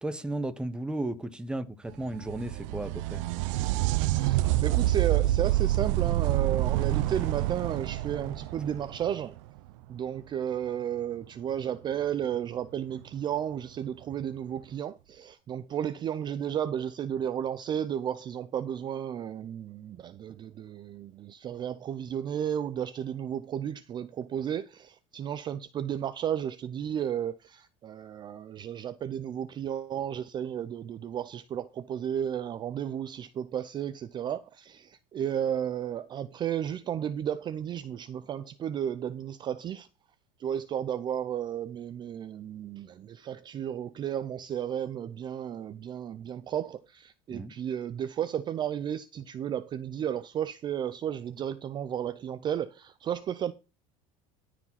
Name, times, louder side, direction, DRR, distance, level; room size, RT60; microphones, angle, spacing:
voice 1, 0.0-3.2 47.3-47.5, right 1 dB, 5° right, 0.9 m, -34 dB
sound 1, 2.0-9.6 13.0-13.1 14.1-14.2, right 16 dB, 80° right, 0.6 m, -27 dB
voice 2, 4.1-9.3 9.9-39.9 40.4-53.5, right 9 dB, 30° right, 0.5 m, -33 dB
13.0 x 4.9 x 5.7 m
cardioid pair, 145°, 16 cm